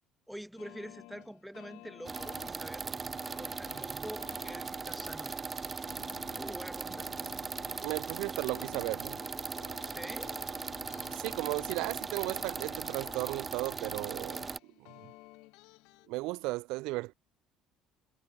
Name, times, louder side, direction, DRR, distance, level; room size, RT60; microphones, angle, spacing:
voice 1, 0.3-3.0 3.4-5.3 6.4-7.1 9.8-10.3, equal, ahead, 1.3 m, -45 dB
sound 1, 0.6-16.1, left 24 dB, 90° left, 3.9 m, -55 dB
sound 2, 2.0-14.6, right 4 dB, 20° right, 0.7 m, -39 dB
Telephone, 6.4-8.9 9.2-9.5 9.9-10.5 11.0-11.5 12.0-12.5 13.0-13.5 14.0-14.5 15.0-15.5 16.0-16.3, left 14 dB, 65° left, 7.0 m, -62 dB
voice 2, 7.8-9.2 11.1-14.5 14.8-15.1 16.1-17.1, right 22 dB, 85° right, 1.8 m, -35 dB
cardioid pair, 135°, 0 cm